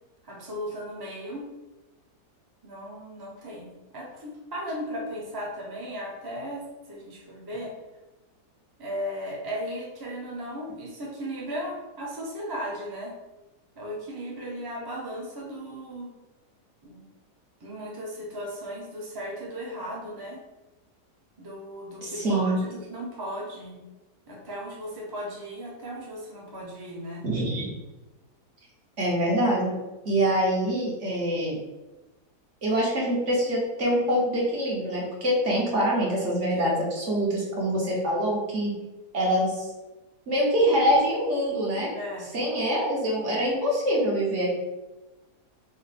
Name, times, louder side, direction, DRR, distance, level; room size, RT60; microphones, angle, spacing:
voice 1, 0.2-1.5 2.6-7.7 8.8-13.1 13.8-16.1 16.8-17.0 17.6-20.4 21.4-23.8 24.3-27.2 36.6-36.8 41.9-42.3, equal, 20° right, -4 dB, 0.6 m, -36 dB
voice 2, 22.0-22.6 27.2-27.7 29.0-29.7 30.0-31.6 32.6-38.7 39.1-39.7 40.3-41.9 42.3-44.5, equal, 50° right, -4 dB, 1.3 m, -25 dB
5.2 x 2.1 x 4.1 m, 1.1 s
omnidirectional pair, 1.7 m